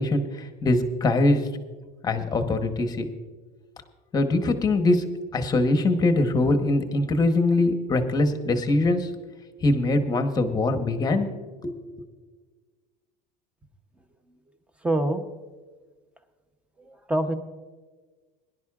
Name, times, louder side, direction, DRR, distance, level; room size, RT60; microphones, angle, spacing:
voice 1, 0.0-1.4 2.0-3.0 4.1-5.1 5.3-9.1 9.6-11.3 11.6-11.7, left 2 dB, 20° left, 7 dB, 1.0 m, -22 dB
voice 2, 14.8-15.2 17.1-17.3, right 1 dB, 5° right, 8 dB, 0.8 m, -23 dB
22.0 x 11.0 x 2.4 m, 1.4 s
cardioid pair, 165°, 21 cm